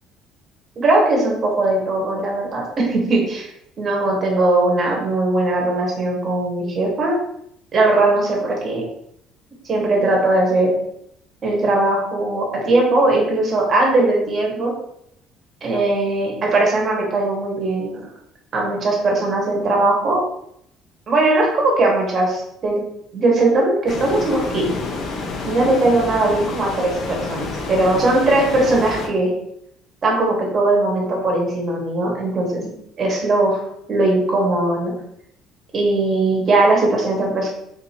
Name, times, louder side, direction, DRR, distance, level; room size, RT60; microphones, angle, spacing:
voice 1, 0.8-3.5 3.8-7.2 7.7-8.8 9.6-10.7 11.4-14.7 15.6-18.0 18.5-20.2 21.1-22.8 23.1-24.7 25.4-29.3 30.0-32.7 33.0-33.6 33.9-34.9 35.7-37.5, right 2 dB, 30° right, -1 dB, 1.1 m, -19 dB
sound 1, 23.9-29.1, left 3 dB, 40° left, 0.6 m, -29 dB
3.8 x 2.6 x 4.3 m, 0.74 s
cardioid pair, 180°, 0 cm